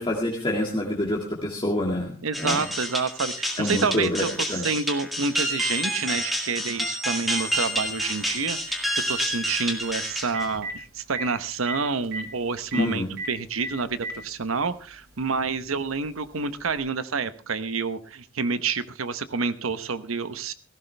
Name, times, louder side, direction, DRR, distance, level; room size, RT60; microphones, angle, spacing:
voice 1, 0.0-2.6 3.6-4.2 4.5-4.6 12.7-13.1, left 1 dB, 25° left, -2 dB, 2.0 m, -26 dB
voice 2, 2.2-20.5, right 4 dB, 85° right, 13 dB, 1.0 m, -28 dB
sound 1, 2.3-10.6, equal, ahead, 2.0 m, -29 dB
Telephone, 7.5-7.6 9.8-9.9 10.2-10.7 11.1-11.2 11.7-11.8 12.0-12.2 12.7-12.8 13.2-13.3 13.6-14.2 15.1-15.2 16.7-16.8, right 2 dB, 55° right, 4.5 m, -32 dB
16.5 x 15.0 x 3.3 m, 0.35 s
head